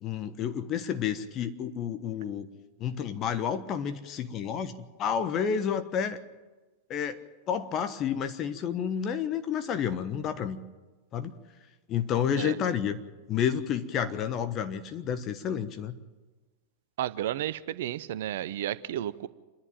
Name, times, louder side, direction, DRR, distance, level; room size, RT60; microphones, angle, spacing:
voice 1, 0.0-2.5 2.8-4.7 5.0-6.2 6.9-7.2 7.5-10.6 11.1-11.3 11.9-13.0 13.3-15.9, left 8 dB, 35° left, 11 dB, 1.2 m, -30 dB
voice 2, 17.0-19.3, right 12 dB, 55° right, 16 dB, 0.7 m, -32 dB
27.5 x 11.0 x 9.0 m, 1.2 s
figure-of-eight pair, 90°, 0 cm